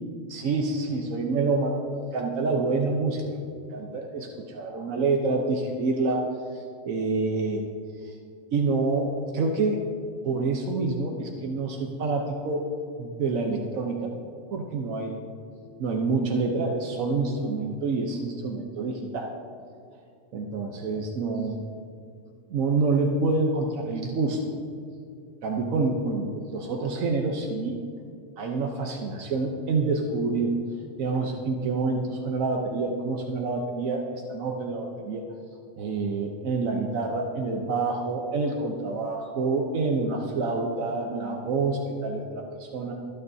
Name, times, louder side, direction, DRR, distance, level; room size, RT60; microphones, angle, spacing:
voice 1, 0.3-3.2 3.7-6.2 6.5-7.6 8.0-8.1 8.5-9.8 10.2-12.6 13.0-14.1 14.5-15.2 15.8-19.3 20.3-21.6 22.5-24.4 25.4-27.8 28.4-30.5 31.0-35.2 35.8-42.9, right 3 dB, 85° right, 1 dB, 1.3 m, -27 dB
25.0 x 9.3 x 2.7 m, 2.5 s
omnidirectional pair, 1.4 m